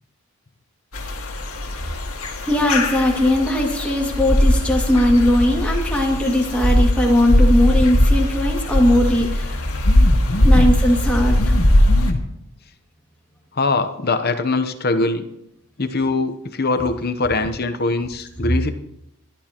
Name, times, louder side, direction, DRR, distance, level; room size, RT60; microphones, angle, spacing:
sound 1, 0.9-12.1, left 1 dB, 75° left, 2.0 m, -19 dB
voice 1, 2.4-9.6 10.4-11.4, left 1 dB, 5° left, -2 dB, 2.2 m, -19 dB
voice 2, 9.8-10.7 11.4-12.2 13.6-15.3 15.8-18.7, left 3 dB, 45° left, 8 dB, 0.9 m, -23 dB
27.5 x 11.5 x 3.0 m, 0.79 s
head